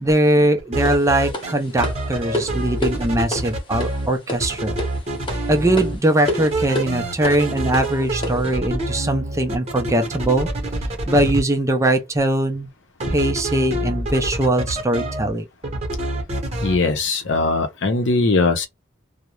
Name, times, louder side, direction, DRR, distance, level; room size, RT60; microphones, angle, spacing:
voice 1, 0.0-4.8 5.5-10.5 11.1-12.7 13.1-15.4, right 1 dB, 15° right, 0.4 m, -20 dB
sound 1, 0.6-4.1 4.4-6.0 6.2-11.4 13.0-15.3 15.6-16.8, right 1 dB, 30° right, 0.8 m, -26 dB
sound 2, 0.9-8.5, left 1 dB, 25° left, 0.7 m, -31 dB
voice 2, 16.6-18.7, left 3 dB, 65° left, 0.7 m, -20 dB
2.4 x 2.0 x 2.9 m
head